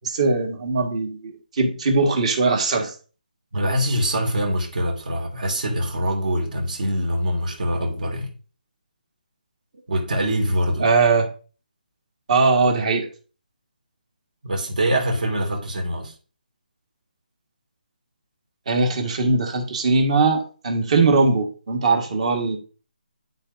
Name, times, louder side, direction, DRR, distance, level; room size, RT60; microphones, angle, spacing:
voice 1, 0.0-2.9 10.8-11.3 12.3-13.1 18.7-22.6, right 3 dB, 45° right, 1.6 m, -20 dB
voice 2, 3.5-8.3 9.9-10.9 14.4-16.1, equal, 60° right, 2.3 m, -24 dB
11.5 x 4.1 x 2.6 m
figure-of-eight pair, 160°, 5 cm